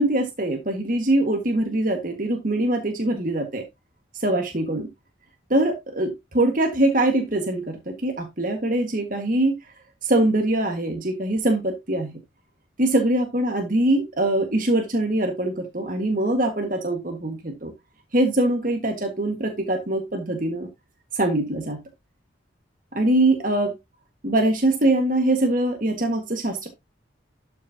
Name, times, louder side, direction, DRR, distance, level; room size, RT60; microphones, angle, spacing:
voice 1, 0.0-3.6 4.1-4.9 5.5-9.6 10.0-12.1 12.8-17.7 18.1-20.7 21.1-21.8 22.9-23.7 24.2-26.7, right 1 dB, 45° right, 4 dB, 1.6 m, -23 dB
11.5 x 6.3 x 2.8 m, 0.21 s
head